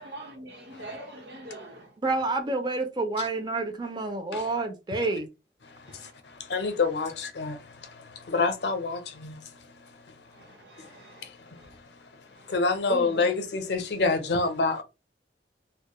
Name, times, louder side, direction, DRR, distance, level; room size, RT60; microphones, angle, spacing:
voice 1, 0.0-1.9 5.9-6.1 10.4-11.3, right 1 dB, 75° right, 1.0 m, -43 dB
voice 2, 2.0-5.3 12.9-13.1, right 3 dB, 25° right, 0.4 m, -29 dB
voice 3, 5.6-10.0 10.8-10.9 11.2-12.1 12.5-14.8, left 3 dB, 70° left, 0.5 m, -29 dB
2.2 x 2.0 x 2.8 m
head